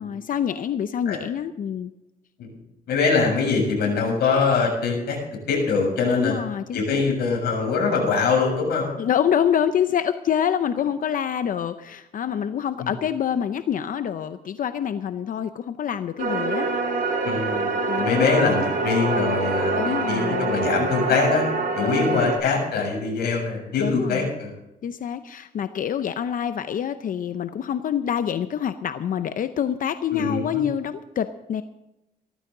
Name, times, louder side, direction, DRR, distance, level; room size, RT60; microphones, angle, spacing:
voice 1, 0.0-1.9 6.2-7.2 9.0-16.7 17.9-18.3 19.8-20.5 21.1-21.2 21.8-22.3 23.8-24.3 24.8-31.6, left 9 dB, 60° left, 10 dB, 0.7 m, -26 dB
voice 2, 2.9-5.2 5.5-6.3 6.7-8.9 12.8-12.9 17.2-21.4 21.8-24.5 30.1-30.6, left 4 dB, 90° left, 0 dB, 7.0 m, -23 dB
sound 1, 16.2-22.4, right 3 dB, 60° right, 5.3 m, -25 dB
18.0 x 14.0 x 3.9 m, 0.92 s
cardioid pair, 110°, 16 cm